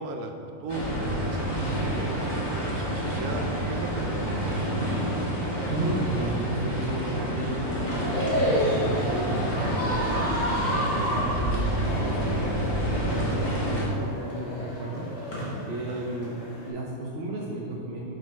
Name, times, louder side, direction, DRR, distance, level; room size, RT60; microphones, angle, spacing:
voice 1, 0.0-4.7 15.8-16.0, right 3 dB, 80° right, 5 dB, 1.1 m, -37 dB
sound 1, 0.7-13.9, right 1 dB, 20° left, 1.1 m, -28 dB
voice 2, 5.7-16.4 16.7-18.1, right 1 dB, 55° right, -3 dB, 0.7 m, -34 dB
sound 2, 7.7-16.7, equal, 75° left, 1.9 m, -31 dB
6.3 x 4.2 x 4.6 m, 2.5 s
omnidirectional pair, 1.6 m